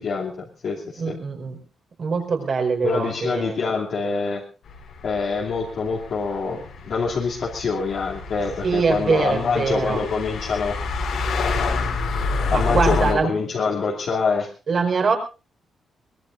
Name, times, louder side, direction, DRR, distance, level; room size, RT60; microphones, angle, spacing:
voice 1, 0.0-1.1 2.8-4.4 5.0-10.8 12.3-14.5, left 4 dB, 60° left, -4 dB, 2.7 m, -25 dB
voice 2, 1.0-1.6 2.0-3.6 8.6-10.0 12.5-13.3 14.7-15.2, right 5 dB, 50° right, 2 dB, 4.7 m, -23 dB
sound 1, 4.7-13.1, left 3 dB, 80° left, 4.3 m, -28 dB
23.0 x 20.0 x 2.6 m, 0.32 s
cardioid pair, 125°, 0 cm